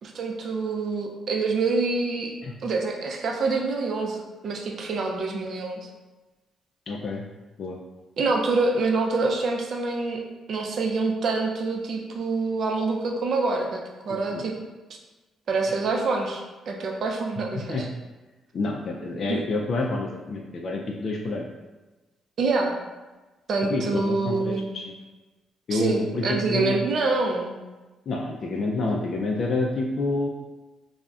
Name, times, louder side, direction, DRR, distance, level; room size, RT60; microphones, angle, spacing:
voice 1, 0.0-2.3 2.6-4.2 4.4-5.9 8.2-10.2 10.5-14.5 15.5-17.9 19.3-19.4 22.4-22.8 23.5-24.7 25.7-27.6, right 3 dB, 60° right, 1 dB, 0.4 m, -26 dB
voice 2, 6.9-7.2 7.6-7.8 14.3-14.4 17.6-17.9 18.5-21.5 23.7-24.9 25.7-26.7 28.1-30.3, left 2 dB, 50° left, -1 dB, 0.3 m, -28 dB
2.4 x 2.0 x 3.5 m, 1.2 s
cardioid pair, 90°, 0 cm